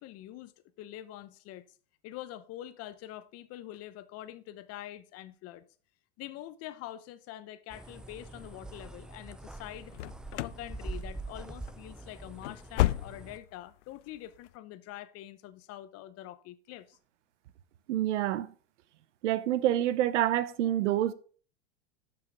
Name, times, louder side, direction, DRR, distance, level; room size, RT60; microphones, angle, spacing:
voice 1, 0.0-1.6 2.0-5.6 6.2-9.9 10.3-17.0, left 13 dB, 45° left, 0.9 m, -45 dB
sound 1, 7.7-13.4, right 2 dB, ahead, 0.3 m, -44 dB
sound 2, 9.9-10.7 10.9-11.4 11.7-11.8 12.2-13.5 13.8-13.9 14.4-14.5, left 16 dB, 85° left, 0.5 m, -31 dB
voice 2, 17.9-18.5 19.2-21.1, right 12 dB, 80° right, 0.8 m, -27 dB
12.0 x 5.8 x 3.6 m
hypercardioid pair, 115°, 35 cm